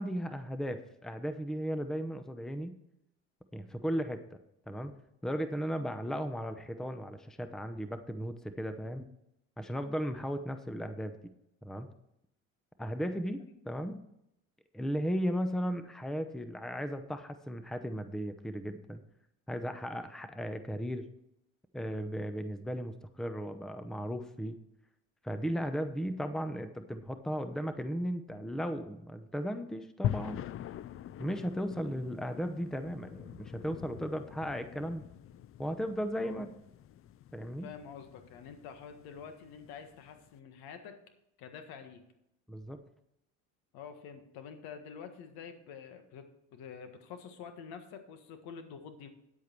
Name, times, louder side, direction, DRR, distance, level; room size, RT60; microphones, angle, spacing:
voice 1, 0.0-2.7 3.5-4.2 4.7-4.9 5.2-9.1 9.6-11.1 11.6-11.9 12.8-14.0 14.7-19.0 19.5-21.0 21.7-24.6 25.2-30.4 31.2-35.0 35.6-36.5 37.3-37.7 42.5-42.8, equal, ahead, 10 dB, 0.7 m, -36 dB
sound 1, 30.0-40.3, left 11 dB, 35° left, 0.4 m, -43 dB
voice 2, 37.6-41.0 41.4-42.0 43.7-49.1, left 6 dB, 70° left, 8 dB, 1.7 m, -47 dB
9.8 x 8.2 x 4.6 m, 0.82 s
supercardioid pair, 85°, 38 cm